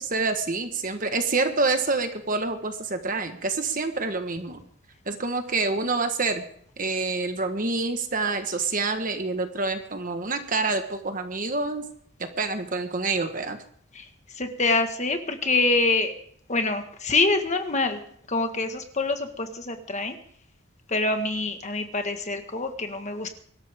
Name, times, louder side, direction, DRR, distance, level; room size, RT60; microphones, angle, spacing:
voice 1, 0.0-4.6 5.1-6.4 6.8-11.8 12.2-13.6, right 3 dB, 40° right, 7 dB, 1.4 m, -27 dB
voice 2, 14.4-16.1 16.5-18.0 18.3-20.1 20.9-23.3, left 3 dB, 35° left, 6 dB, 1.6 m, -25 dB
24.0 x 13.0 x 3.6 m, 0.62 s
head